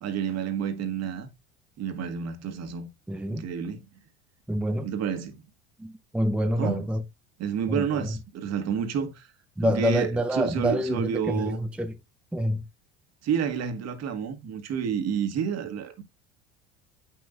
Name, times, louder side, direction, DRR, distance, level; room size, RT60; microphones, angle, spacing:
voice 1, 0.0-1.3 1.8-2.9 3.3-3.9 4.8-5.4 6.6-6.9 7.4-9.3 9.6-11.6 13.2-16.0, right 7 dB, 50° right, 1.6 m, -30 dB
voice 2, 3.1-3.4 4.5-4.9 5.8-7.0 7.7-8.2 9.6-11.9 12.3-12.6, equal, 5° right, 0.6 m, -27 dB
8.3 x 5.9 x 2.6 m
hypercardioid pair, 85°, 33 cm